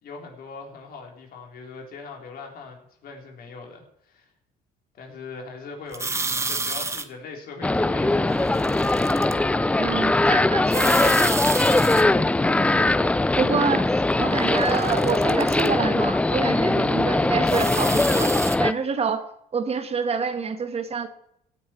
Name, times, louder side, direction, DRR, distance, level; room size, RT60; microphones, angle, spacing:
voice 1, 0.0-4.3 5.0-9.4, left 4 dB, 60° left, 2 dB, 3.9 m, -41 dB
sound 1, 5.9-7.0 8.3-9.3 10.7-12.0 14.4-15.7 17.5-18.6, right 3 dB, 15° right, 1.1 m, -30 dB
sound 2, 7.6-18.7, left 2 dB, 5° left, 0.4 m, -21 dB
voice 2, 9.8-11.2 13.4-18.3 18.6-19.2 19.5-21.1, right 5 dB, 35° right, 9 dB, 1.5 m, -27 dB
17.0 x 9.3 x 4.6 m, 0.76 s
cardioid pair, 110°, 17 cm